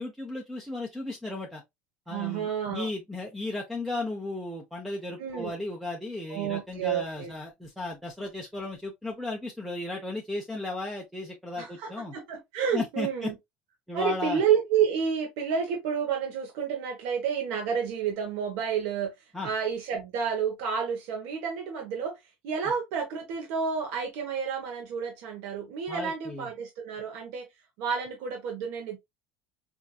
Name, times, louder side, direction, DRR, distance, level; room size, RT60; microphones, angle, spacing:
voice 1, 0.0-1.6 2.1-12.1 12.7-13.3 13.9-14.4 19.3-19.5 25.9-26.5, left 2 dB, ahead, 0.6 m, -35 dB
voice 2, 2.1-2.9 5.2-5.5 6.3-7.3 11.6-13.3 13.9-27.5 27.8-29.0, right 7 dB, 75° right, 1.0 m, -30 dB
4.5 x 2.6 x 2.3 m
cardioid pair, 155°, 4 cm